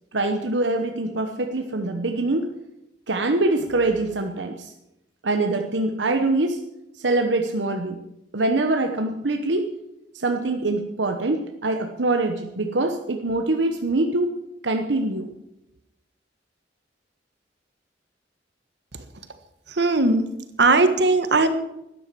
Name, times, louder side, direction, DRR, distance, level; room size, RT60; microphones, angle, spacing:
voice 1, 0.1-2.5 3.1-4.7 5.2-6.6 7.0-8.0 8.3-9.7 10.1-14.4 14.6-15.3, right 2 dB, 80° right, 5 dB, 1.1 m, -24 dB
voice 2, 19.8-20.2 20.6-21.5, right 3 dB, 65° right, 9 dB, 1.5 m, -18 dB
12.5 x 10.0 x 7.6 m, 0.88 s
head